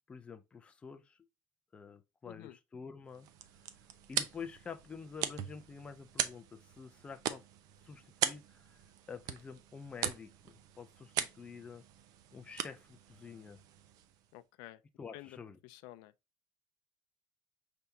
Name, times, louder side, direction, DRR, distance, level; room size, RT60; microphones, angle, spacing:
voice 1, 0.1-1.2 1.7-3.3 4.1-7.4 7.9-8.8 9.1-11.8 12.3-13.6 15.0-15.6, left 5 dB, 15° left, 0.4 m, -48 dB
voice 2, 2.2-2.6 14.3-14.8 15.1-15.4 15.6-16.1, left 16 dB, 75° left, 0.4 m, -50 dB
sound 1, 3.1-14.3, right 10 dB, 55° right, 0.6 m, -41 dB
5.8 x 3.4 x 2.6 m
cardioid pair, 170°, 8 cm